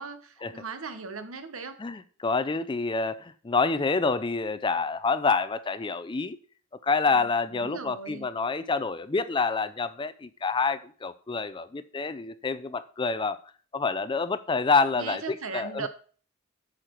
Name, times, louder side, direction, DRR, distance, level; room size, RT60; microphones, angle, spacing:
voice 1, 0.0-1.8 7.1-7.3 7.5-8.3 14.9-15.9, right 5 dB, 70° right, 1.1 m, -38 dB
voice 2, 1.8-6.4 6.8-13.4 13.7-15.9, left 4 dB, 20° left, 0.4 m, -27 dB
9.0 x 6.5 x 4.4 m
head